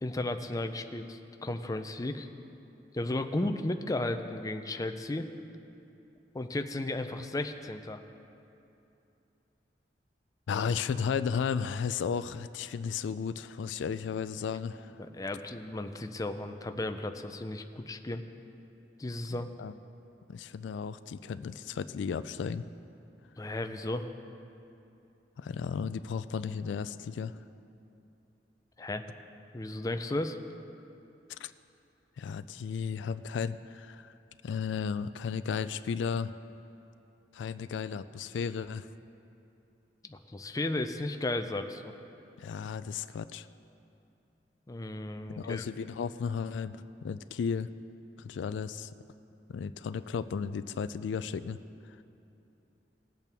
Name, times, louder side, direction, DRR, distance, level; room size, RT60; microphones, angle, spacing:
voice 1, 0.0-2.3 2.9-5.3 6.3-8.0 15.0-18.2 19.0-19.5 23.4-24.1 28.8-29.0 29.5-30.4 40.1-41.9 44.7-45.6, left 2 dB, 20° left, 7 dB, 0.5 m, -34 dB
voice 2, 10.5-15.0 19.6-19.7 20.3-22.6 25.4-27.3 31.3-31.5 32.2-34.1 34.4-36.3 37.3-38.9 42.4-43.5 45.3-47.7 48.2-48.9 49.5-51.6, left 6 dB, 85° left, 13 dB, 0.3 m, -34 dB
19.0 x 8.2 x 3.5 m, 2.8 s
head